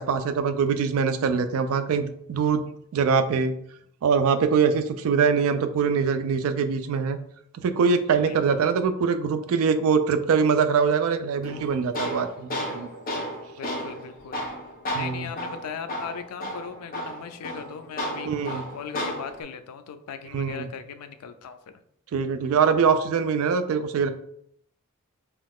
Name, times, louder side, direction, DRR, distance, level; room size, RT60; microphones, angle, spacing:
voice 1, 0.0-2.6 2.9-3.5 4.0-7.2 7.6-12.9 14.9-15.3 18.3-18.6 20.3-20.7 22.1-24.1, right 5 dB, 65° right, 10 dB, 0.3 m, -23 dB
voice 2, 8.2-8.7 13.5-14.5 14.9-21.8, left 6 dB, 85° left, 10 dB, 0.4 m, -38 dB
Tools, 11.4-19.4, equal, 40° left, 0.7 m, -33 dB
2.9 x 2.3 x 3.4 m, 0.69 s
head